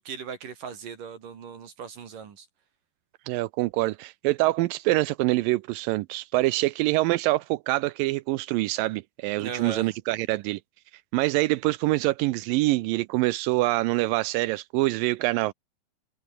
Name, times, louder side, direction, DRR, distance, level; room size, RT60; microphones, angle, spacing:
voice 1, 0.0-2.5 9.4-9.9, right 7 dB, 65° right, 4.3 m, -38 dB
voice 2, 3.3-10.6 11.1-15.5, right 19 dB, 80° right, 2.2 m, -25 dB
omnidirectional pair, 4.2 m